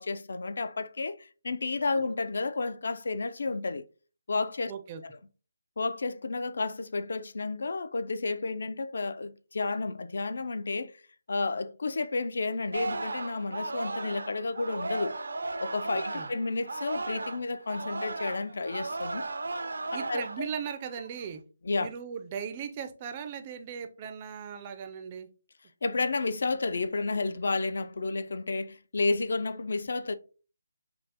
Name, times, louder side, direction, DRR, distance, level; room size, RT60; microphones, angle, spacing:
voice 1, 0.0-3.8 4.3-4.7 5.8-11.0 11.3-15.2 15.6-19.3 20.1-20.5 21.6-21.9 25.8-30.1, left 3 dB, 55° left, 0.4 m, -31 dB
voice 2, 4.7-5.0 15.9-16.3 19.9-21.4 21.8-25.3, right 7 dB, 20° right, 0.4 m, -38 dB
Singing, 12.7-17.4 17.7-20.5 20.9-21.2, right 2 dB, 75° right, 0.5 m, -35 dB
5.2 x 2.0 x 2.8 m
hypercardioid pair, 175°, 0 cm